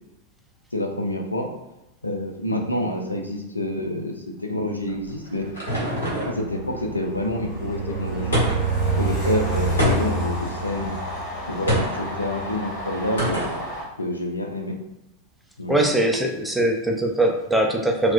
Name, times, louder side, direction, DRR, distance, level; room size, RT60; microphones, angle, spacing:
voice 1, 0.7-1.5 2.0-5.5 6.2-8.4 9.0-11.0 11.5-13.4 14.0-14.8 15.6-15.9, left 1 dB, 85° left, 2 dB, 0.4 m, -27 dB
sound 1, 4.9-6.4 8.3-8.8 9.8-10.3 11.7-12.0 13.2-13.6, equal, 65° left, 1.2 m, -24 dB
Train, 5.4-13.8, right 2 dB, 40° left, 1.2 m, -28 dB
voice 2, 15.7-18.1, right 1 dB, 5° right, 1 dB, 0.5 m, -21 dB
4.3 x 2.1 x 2.4 m, 0.92 s
figure-of-eight pair, 90°, 0 cm